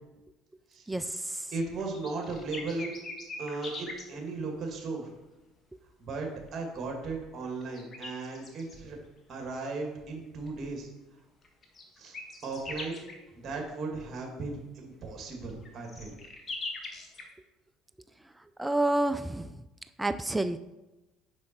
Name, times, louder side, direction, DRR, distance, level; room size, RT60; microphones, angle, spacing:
voice 1, 0.9-1.2 18.6-19.5 20.0-20.6, right 1 dB, 10° right, 11 dB, 0.4 m, -28 dB
sound 1, 1.5-4.1 6.5-6.6 7.4-8.8 10.5-10.6 11.4-13.3 15.5-17.3, left 2 dB, 35° left, 1.4 m, -41 dB
voice 2, 1.5-2.9 3.4-5.1 6.0-9.0 9.3-10.9 11.9-13.0 13.4-16.2, right 3 dB, 40° right, 1 dB, 2.0 m, -36 dB
6.3 x 5.2 x 4.3 m, 1.0 s
hypercardioid pair, 70°, 0 cm